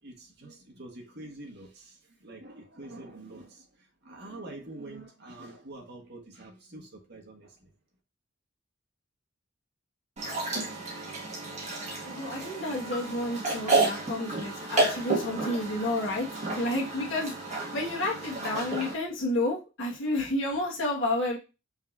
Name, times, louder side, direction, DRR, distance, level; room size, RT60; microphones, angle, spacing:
voice 1, 0.0-7.7, right 2 dB, 55° right, 1 dB, 1.4 m, -46 dB
sound 1, 10.2-18.9, right 2 dB, 35° right, 1.6 m, -31 dB
voice 2, 12.0-16.3 16.6-21.4, left 1 dB, 65° left, -3 dB, 1.5 m, -30 dB
5.5 x 3.4 x 2.5 m, 0.29 s
head